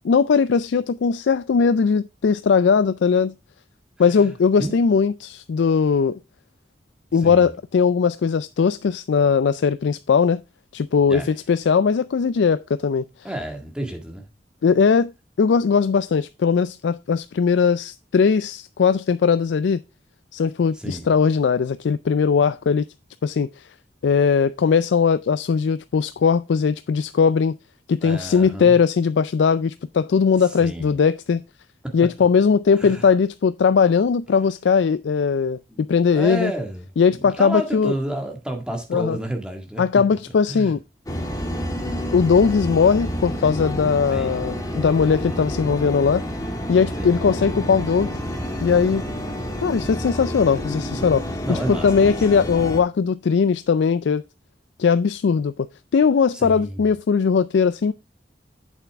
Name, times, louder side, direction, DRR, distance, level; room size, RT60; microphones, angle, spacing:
voice 1, 0.0-3.3 4.0-6.2 7.1-10.4 10.7-13.1 14.6-15.1 15.4-19.8 20.3-22.8 23.2-23.7 24.0-27.5 27.9-31.4 31.9-36.5 37.0-37.9 38.9-39.2 39.8-40.8 42.1-46.2 46.7-48.1 48.6-49.0 49.6-54.2 54.8-55.5 55.9-57.9, left 6 dB, 85° left, 0.4 m, -19 dB
voice 2, 7.1-7.5 11.1-11.3 13.2-14.3 20.7-21.1 28.0-28.8 30.6-31.0 31.8-32.0 32.8-33.1 35.7-40.0 40.5-40.7 42.1-42.4 44.1-44.4 47.0-47.2 51.4-52.1 56.3-56.9, right 1 dB, 5° right, 1.8 m, -31 dB
sound 1, 41.1-52.8, equal, 20° left, 1.4 m, -29 dB
8.3 x 7.1 x 3.5 m
head